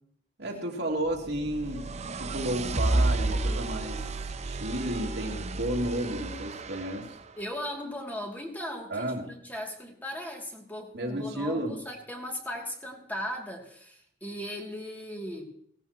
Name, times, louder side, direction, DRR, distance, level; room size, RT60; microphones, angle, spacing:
voice 1, 0.4-7.2 8.9-9.3 10.9-11.8, right 1 dB, 65° right, 0 dB, 2.6 m, -32 dB
sound 1, 1.1-7.2, right 2 dB, 40° right, 0.7 m, -31 dB
voice 2, 7.4-15.4, equal, 10° left, 0 dB, 2.6 m, -38 dB
17.0 x 16.5 x 3.0 m, 0.67 s
head